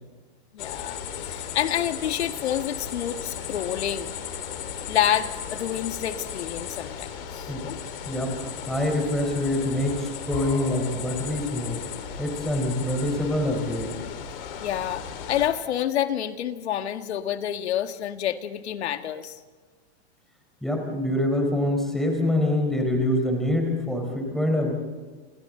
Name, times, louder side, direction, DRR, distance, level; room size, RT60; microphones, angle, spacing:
voice 1, 0.5-4.1 4.9-7.8 14.6-19.4, left 10 dB, 80° left, 8 dB, 1.9 m, -28 dB
sound 1, 0.6-15.5, left 8 dB, 55° left, 4.4 m, -36 dB
voice 2, 8.1-11.8 12.2-13.9 20.6-24.7, left 1 dB, ahead, 1 dB, 4.2 m, -25 dB
28.5 x 28.0 x 3.9 m, 1.4 s
supercardioid pair, 160°, 32 cm